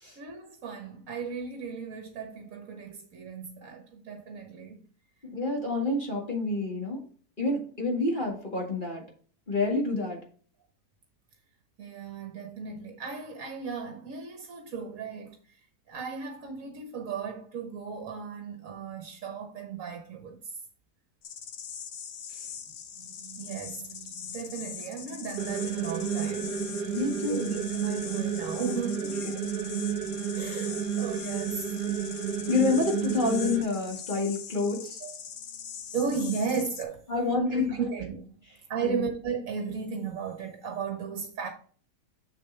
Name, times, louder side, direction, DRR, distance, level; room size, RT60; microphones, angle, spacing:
voice 1, 0.2-4.8 11.8-20.6 23.0-32.0 35.0-37.1 37.5-38.3 38.7-41.5, right 5 dB, 55° right, 1.4 m, -36 dB
voice 2, 5.2-7.0 7.4-9.0 9.5-10.2 26.9-27.6 32.5-35.0 37.1-37.7 38.8-39.0, left 3 dB, 30° left, 2.0 m, -28 dB
sound 1, 21.2-36.8, left 8 dB, 60° left, 1.1 m, -42 dB
sound 2, 25.4-33.6, right 8 dB, 75° right, 1.4 m, -32 dB
6.9 x 6.7 x 3.3 m
omnidirectional pair, 1.8 m